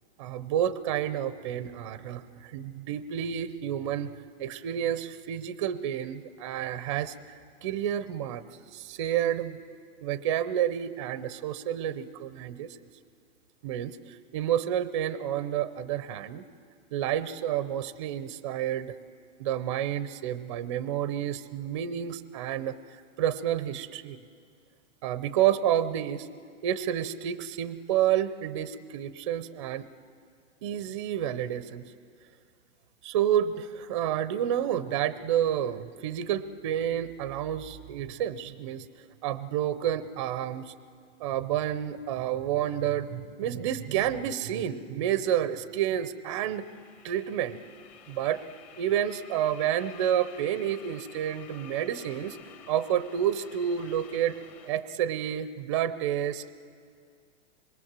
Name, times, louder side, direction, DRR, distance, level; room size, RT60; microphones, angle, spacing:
voice 1, 0.2-4.1 4.4-7.2 7.6-8.4 8.7-9.6 10.0-12.8 13.6-14.0 14.3-16.5 16.9-18.9 19.4-22.8 23.2-24.2 25.0-26.3 26.6-29.9 30.6-31.8 33.0-38.9 39.2-40.7 41.2-46.6 47.0-47.6 48.1-48.4 48.8-52.4 52.7-54.4 54.7-56.4, right 10 dB, 25° right, 15 dB, 0.5 m, -29 dB
sound 1, 46.3-54.7, left 8 dB, 30° left, 2.0 m, -51 dB
26.0 x 22.5 x 7.4 m, 2.2 s
hypercardioid pair, 165°, 38 cm